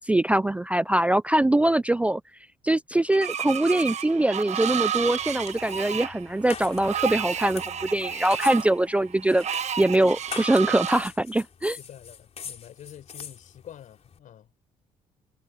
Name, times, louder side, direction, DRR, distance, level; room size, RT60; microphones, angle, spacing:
voice 1, 0.1-2.2 2.6-9.4 9.8-11.8, right 1 dB, 10° right, 0.3 m, -23 dB
Screech, 3.1-11.1, right 8 dB, 55° right, 1.3 m, -31 dB
sound 1, 5.0-14.2, left 7 dB, 50° left, 3.6 m, -43 dB
voice 2, 11.7-14.5, left 10 dB, 70° left, 7.2 m, -47 dB
cardioid pair, 75°, 14 cm